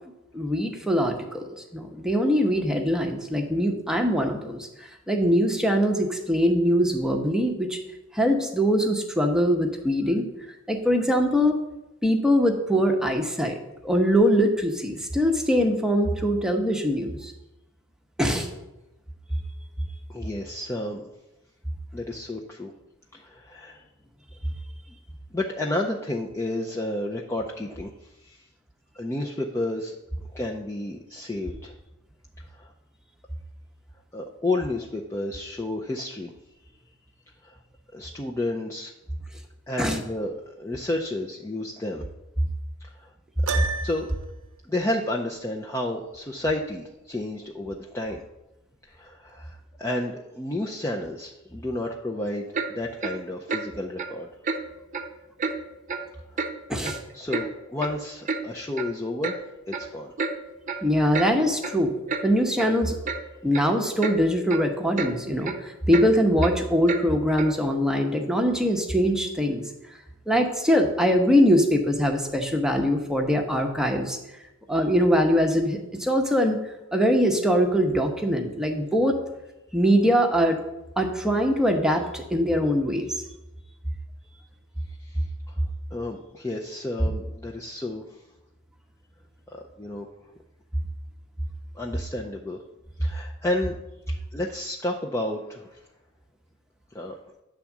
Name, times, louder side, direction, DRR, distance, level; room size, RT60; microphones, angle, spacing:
voice 1, 0.3-1.4 1.7-7.8 8.1-10.3 10.7-11.6 12.0-17.3 18.2-18.5 39.8-40.0 56.7-57.0 60.8-61.9 62.2-63.0 63.4-69.6 70.3-74.2 74.7-76.6 76.9-79.2 79.7-80.6 81.0-83.2, equal, 5° right, 3 dB, 0.8 m, -22 dB
voice 2, 20.1-21.1 21.9-22.7 23.1-23.8 25.3-28.5 28.9-29.9 30.3-31.7 32.5-32.7 34.1-36.3 37.4-37.6 37.9-38.9 39.7-42.0 42.8-43.1 43.8-44.1 44.6-48.2 48.9-54.3 57.1-60.1 85.0-85.6 85.9-88.0 89.5-90.1 91.7-92.6 93.0-93.7 94.3-95.8 96.9-97.2, left 1 dB, 15° left, -1 dB, 0.5 m, -31 dB
Piano, 43.5-44.3, right 4 dB, 80° right, 0.7 m, -30 dB
Clock, 52.5-52.7 53.0-53.2 53.5-53.7 54.0-54.1 54.4-54.6 54.9-55.1 55.4-55.5 55.9-56.0 56.4-56.5 56.8-57.5 57.8-57.9 58.3-58.4 58.8-58.9 59.2-59.4 59.7-59.9 60.2-60.3 60.7-60.8 61.1-61.3 61.6-61.7 62.1-62.2 62.6-62.7 63.1-63.2 63.5-63.7 64.0-64.2 64.5-64.6 65.0-65.1 65.4-65.6 65.9-66.1 66.4-66.5 66.9-67.0 67.4-67.5, right 4 dB, 35° right, 0.7 m, -29 dB
10.0 x 3.6 x 7.1 m, 0.97 s
head